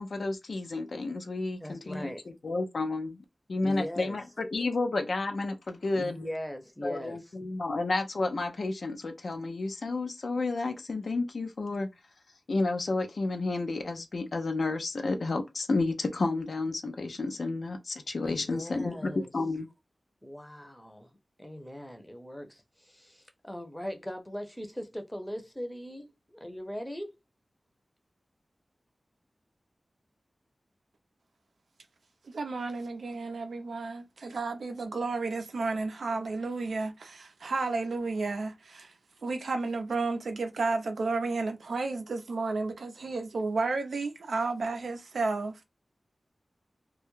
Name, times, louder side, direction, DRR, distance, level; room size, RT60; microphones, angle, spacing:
voice 1, 0.0-3.2 3.5-6.2 6.8-11.9 12.5-19.7, left 3 dB, 70° left, 0.4 m, -31 dB
voice 2, 1.6-2.3 3.6-4.2 5.9-7.3 18.3-19.3 20.2-21.1 21.4-27.1, equal, 10° left, 0.6 m, -40 dB
voice 3, 32.2-38.9 39.2-45.6, right 3 dB, 90° right, 0.4 m, -32 dB
2.2 x 2.0 x 3.0 m
wide cardioid pair, 55°, 0 cm